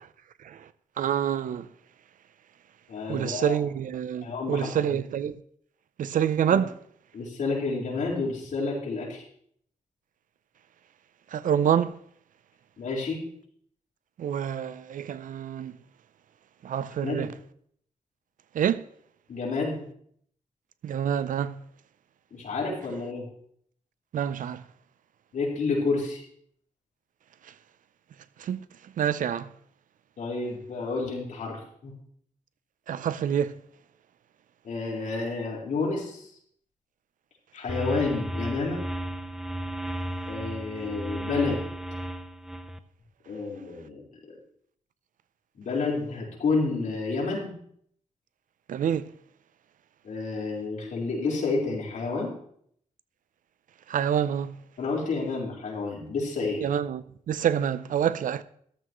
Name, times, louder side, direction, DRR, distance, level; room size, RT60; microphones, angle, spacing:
voice 1, 1.0-1.7 3.1-5.4 6.0-6.7 11.3-12.0 14.2-15.8 16.6-17.3 18.5-18.8 20.8-21.6 24.1-24.6 28.4-28.6 29.0-29.5 32.9-33.6 48.7-49.1 53.9-54.6 56.6-58.4, right 9 dB, 85° right, 0.6 m, -27 dB
voice 2, 2.9-3.6 4.2-4.7 6.5-6.6 7.1-9.2 12.8-13.2 17.0-17.3 19.3-19.8 22.3-23.3 25.3-26.2 30.2-31.9 34.6-36.3 37.5-38.8 40.2-41.6 43.3-44.0 45.5-47.5 50.0-52.3 54.8-56.6, left 3 dB, 80° left, 4.5 m, -30 dB
sound 1, 37.7-42.8, right 1 dB, 5° right, 0.7 m, -34 dB
13.5 x 12.5 x 3.1 m
wide cardioid pair, 120°, 13 cm